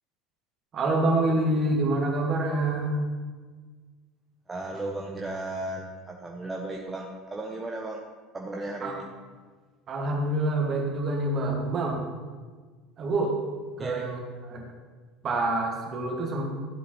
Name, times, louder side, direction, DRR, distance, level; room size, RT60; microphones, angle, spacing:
voice 1, 0.7-3.0 8.8-9.0 9.9-12.0 13.0-13.4 13.8-14.6 15.2-16.5, right 2 dB, 35° right, 0 dB, 2.2 m, -26 dB
voice 2, 4.5-8.0 8.3-9.0 13.8-14.0, right 2 dB, 15° right, 0 dB, 1.0 m, -35 dB
13.0 x 8.0 x 3.2 m, 1.4 s
figure-of-eight pair, 70°, 0 cm